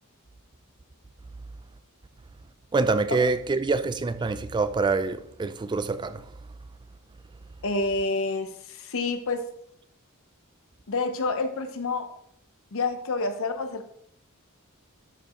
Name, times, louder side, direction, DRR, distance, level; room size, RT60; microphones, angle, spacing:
voice 1, 2.7-6.4, right 3 dB, 20° right, 0.3 m, -26 dB
voice 2, 7.6-9.5 10.9-12.1 12.7-13.9, left 3 dB, 65° left, 0.8 m, -28 dB
11.5 x 4.6 x 3.1 m
head